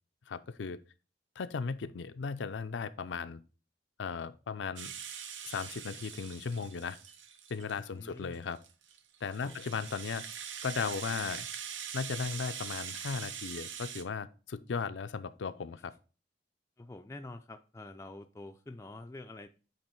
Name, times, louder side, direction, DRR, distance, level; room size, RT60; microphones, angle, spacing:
voice 1, 0.3-0.8 1.4-3.4 4.0-4.9 5.4-7.0 7.5-8.6 9.2-10.2 10.6-11.5 11.9-15.9, left 5 dB, 75° left, 0.5 m, -36 dB
Rattle (instrument), 4.8-7.8 8.3-14.0, right 8 dB, 85° right, 0.8 m, -43 dB
voice 2, 7.8-8.6 9.3-9.6 16.8-19.5, left 2 dB, 15° left, 0.3 m, -47 dB
8.7 x 3.0 x 4.4 m
head